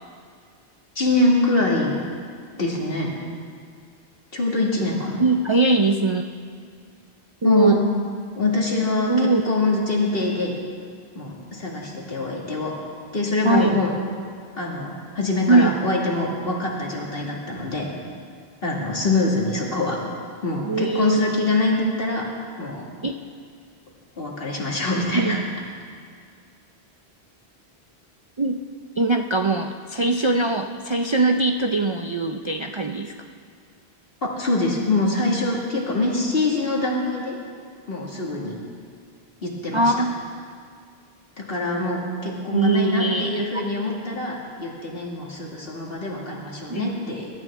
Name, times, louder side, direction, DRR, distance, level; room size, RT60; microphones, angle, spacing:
voice 1, 1.0-2.0 2.6-3.1 4.3-5.2 7.4-7.8 8.4-10.6 11.1-12.7 13.1-13.9 14.6-17.9 18.6-20.0 20.4-22.3 22.6-22.9 24.2-25.4 34.2-37.4 37.9-38.6 39.4-39.9 41.4-47.3, left 2 dB, 60° left, -2 dB, 2.5 m, -24 dB
voice 2, 5.2-6.2 7.4-7.8 9.1-9.4 13.4-13.7 15.5-15.7 20.6-21.3 23.0-23.1 25.1-25.4 28.4-28.6 29.0-33.1 39.7-40.3 42.5-43.5 46.7-47.0, right 3 dB, 40° right, 4 dB, 0.4 m, -21 dB
22.5 x 12.0 x 3.7 m, 2.2 s
omnidirectional pair, 1.1 m